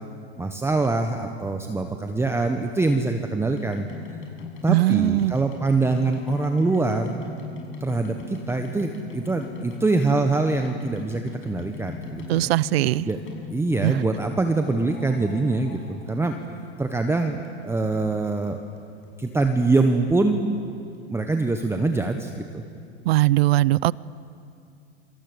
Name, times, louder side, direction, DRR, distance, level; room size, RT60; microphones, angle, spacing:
voice 1, 0.4-3.9 4.6-7.3 7.8-12.5 13.0-13.2 13.5-16.4 16.8-18.6 19.2-20.5 21.1-22.6, right 3 dB, 5° right, 1.4 m, -24 dB
sound 1, 3.5-13.8 14.6-16.7 17.0-17.9 18.5-18.6 18.8-18.9 19.0-19.1 19.6-19.7 19.9-20.0, left 5 dB, 35° left, 7.1 m, -39 dB
voice 2, 4.7-5.3 12.3-13.1 13.8-13.9 23.1-23.9, right 16 dB, 65° right, 0.6 m, -20 dB
27.5 x 26.0 x 8.2 m
hypercardioid pair, 110°, 34 cm